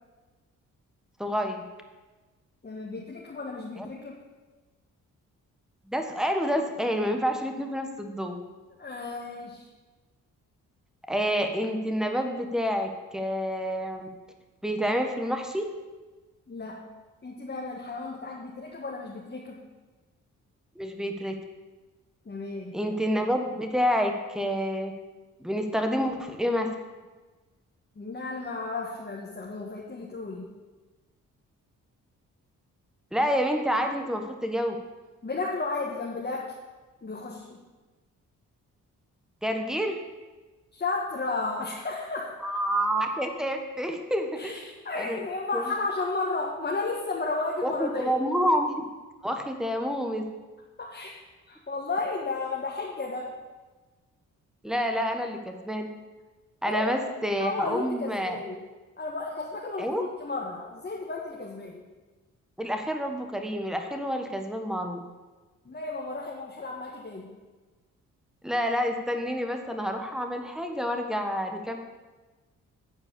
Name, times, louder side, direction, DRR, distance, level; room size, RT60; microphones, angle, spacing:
voice 1, 1.2-1.6 3.8-3.9 5.9-8.3 11.1-14.1 14.6-15.7 20.8-21.4 22.7-24.9 25.4-26.7 33.1-34.8 39.4-40.0 42.4-44.5 44.9-45.2 45.5-45.7 47.6-48.7 49.2-50.2 54.6-55.9 56.6-58.3 59.8-60.0 62.6-65.0 68.4-71.8, equal, ahead, 4 dB, 1.4 m, -28 dB
voice 2, 2.6-4.2 8.8-9.7 16.5-16.8 17.2-19.6 22.3-22.8 28.0-30.5 35.2-36.5 37.0-37.6 40.7-42.3 44.4-48.1 50.8-51.1 51.5-53.3 56.7-56.9 57.4-58.6 59.0-61.8 65.7-67.3, left 3 dB, 30° left, -2 dB, 1.6 m, -33 dB
9.5 x 4.7 x 7.0 m, 1.3 s
supercardioid pair, 55°, 35 cm